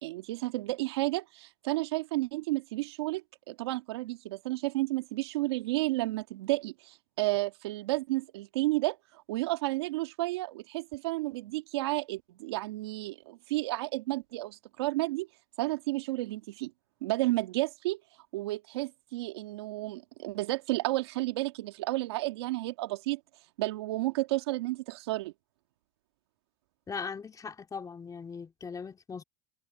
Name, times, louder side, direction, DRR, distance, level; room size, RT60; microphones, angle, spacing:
voice 1, 0.0-15.3 15.6-16.7 17.0-18.0 18.3-23.2 23.6-25.3, right 19 dB, 80° right, 2.2 m, -32 dB
voice 2, 26.9-29.2, left 5 dB, 25° left, 3.0 m, -39 dB
hypercardioid pair, 90°, 13 cm